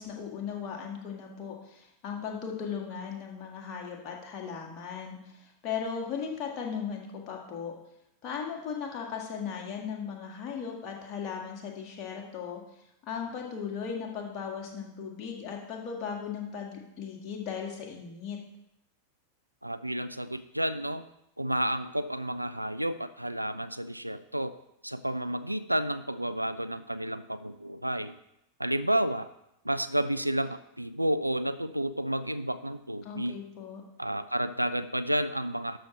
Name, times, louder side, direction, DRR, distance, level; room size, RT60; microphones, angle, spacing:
voice 1, 0.0-7.8 8.2-12.6 13.0-18.4 33.0-33.8, left 7 dB, 35° left, 1 dB, 1.9 m, -37 dB
voice 2, 19.6-21.1 21.4-24.6 24.8-28.2 28.6-29.3 29.6-33.4 34.0-35.8, right 1 dB, 85° right, 12 dB, 0.4 m, -31 dB
12.5 x 6.3 x 3.3 m, 0.81 s
figure-of-eight pair, 90°, 0 cm